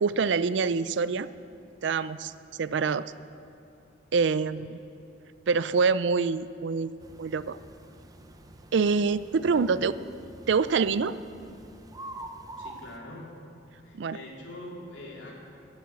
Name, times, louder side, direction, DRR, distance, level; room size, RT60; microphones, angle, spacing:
voice 1, 0.0-1.3 1.8-2.3 2.6-3.1 4.1-4.8 5.5-7.6 8.7-9.9 10.5-11.2 13.9-14.2, right 5 dB, 70° right, 15 dB, 0.4 m, -25 dB
voice 2, 4.3-4.8 9.5-9.8 12.6-13.4 13.8-15.3, left 1 dB, 85° left, -3 dB, 3.0 m, -44 dB
sound 1, 7.0-13.0, right 2 dB, 20° right, 0.6 m, -46 dB
15.0 x 7.2 x 8.8 m, 2.7 s
head